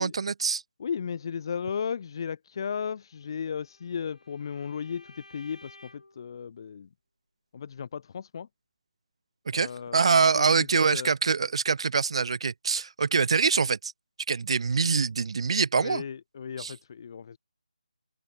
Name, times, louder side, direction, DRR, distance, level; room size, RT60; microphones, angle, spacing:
voice 1, 0.0-0.6 9.5-13.9 14.3-16.0 16.6-16.7, right 5 dB, 50° right, 0.3 m, -25 dB
voice 2, 0.8-6.9 7.5-8.5 9.5-11.1 15.8-17.4, left 7 dB, 35° left, 2.3 m, -35 dB
Bowed string instrument, 3.2-6.2, left 2 dB, 90° left, 6.9 m, -54 dB
open air
figure-of-eight pair, 160°, 4 cm